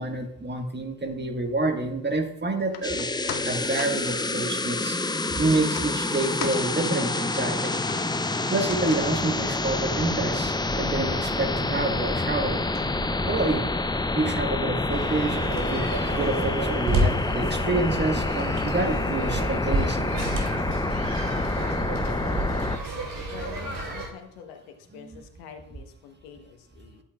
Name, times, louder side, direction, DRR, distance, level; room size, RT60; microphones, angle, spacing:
voice 1, 0.0-3.1 3.4-5.0 5.3-7.7 8.2-12.6 13.2-13.7 14.1-15.9 16.2-20.1 25.0-25.2, right 2 dB, 25° right, 5 dB, 1.5 m, -28 dB
sound 1, 2.6-15.0 15.3-15.4, left 8 dB, 55° left, 0.8 m, -43 dB
sound 2, 2.8-22.8, left 2 dB, 10° left, 0.6 m, -27 dB
sound 3, 14.9-24.1, right 1 dB, 50° right, 2.6 m, -31 dB
voice 2, 23.3-24.6 24.9-27.0, left 6 dB, 75° left, 6 dB, 1.2 m, -45 dB
11.0 x 8.2 x 2.4 m, 0.80 s
hypercardioid pair, 45°, 45 cm